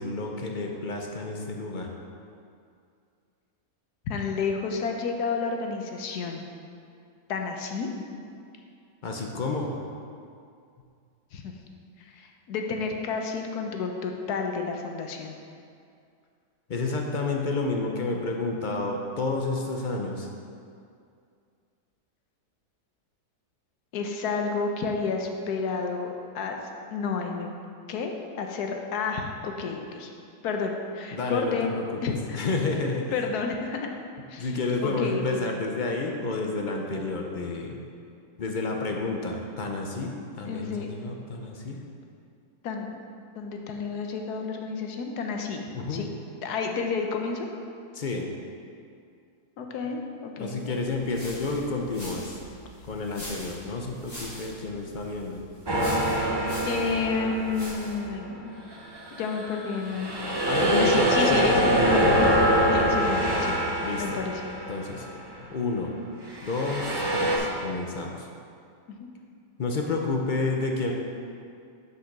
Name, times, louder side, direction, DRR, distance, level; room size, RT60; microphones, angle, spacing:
voice 1, 0.0-1.9 9.0-9.8 16.7-20.3 31.1-33.2 34.4-37.8 38.4-41.8 45.7-46.0 47.9-48.3 50.4-52.4 52.9-55.4 60.5-62.4 62.7-63.0 63.8-64.2 64.7-65.1 65.4-65.9 66.4-68.3 69.6-70.9, left 3 dB, 55° left, 1 dB, 0.5 m, -30 dB
voice 2, 4.1-6.4 7.3-7.9 11.3-11.5 12.1-15.3 23.9-26.6 26.9-27.5 27.9-30.1 30.4-32.4 33.1-33.9 34.3-34.5 34.8-35.4 40.5-40.9 42.6-42.9 43.4-45.6 45.9-46.1 46.4-47.5 49.6-50.8 56.6-58.5 59.1-60.1 60.8-62.3 62.7-63.6 64.0-64.4 68.9-69.0, left 5 dB, 90° left, 3 dB, 1.3 m, -30 dB
sound 1, 50.7-58.1, equal, 25° left, 2.3 m, -44 dB
sound 2, 55.7-58.2 58.7-65.2 66.3-67.4, right 1 dB, 20° right, 0.7 m, -24 dB
6.5 x 5.3 x 5.9 m, 2.4 s
omnidirectional pair, 1.6 m